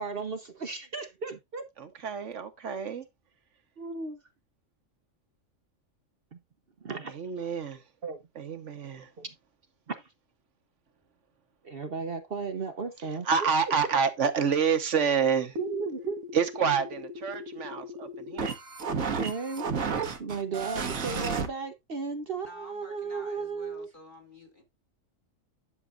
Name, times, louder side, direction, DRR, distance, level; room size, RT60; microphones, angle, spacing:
voice 1, 0.0-1.6 3.8-4.2 6.3-6.4 6.8-7.1 8.0-8.2 9.2-9.3 9.9-10.1 11.6-13.3 15.6-16.2 19.2-19.7 20.2-23.9, right 5 dB, 50° right, 1.0 m, -35 dB
voice 2, 1.8-3.1 7.1-7.8 8.3-9.1 13.0-15.6 16.3-18.6, right 6 dB, 65° right, 1.4 m, -28 dB
sound 1, 15.5-21.5, right 4 dB, 90° right, 1.7 m, -33 dB
voice 3, 22.4-24.6, left 1 dB, 40° left, 3.0 m, -49 dB
11.0 x 6.7 x 2.5 m
omnidirectional pair, 1.4 m